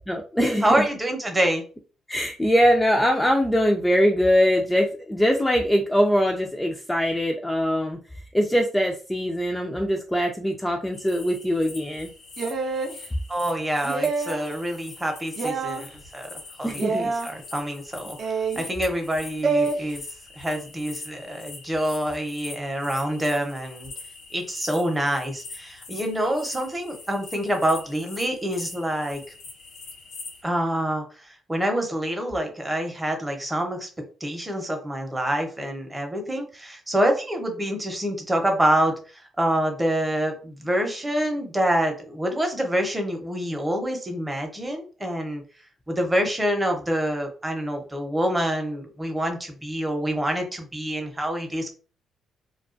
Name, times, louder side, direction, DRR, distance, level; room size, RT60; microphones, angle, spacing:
voice 1, 0.1-0.6 2.1-8.0 8.3-12.1 16.6-17.1, equal, 10° left, 2 dB, 0.3 m, -22 dB
voice 2, 0.6-1.6 13.3-16.3 16.6-18.2 18.5-20.0 20.4-23.9 24.3-29.2 30.4-33.9 34.2-45.4 45.9-51.7, right 1 dB, 15° right, 4 dB, 0.7 m, -26 dB
sound 1, 10.9-30.4, left 3 dB, 85° left, 0.8 m, -43 dB
sound 2, 12.4-12.9 13.8-14.5 15.4-15.8 16.8-17.3 18.2-18.7 19.4-19.8, right 4 dB, 55° right, 0.5 m, -26 dB
2.2 x 2.2 x 2.5 m, 0.37 s
cardioid pair, 90°, 0 cm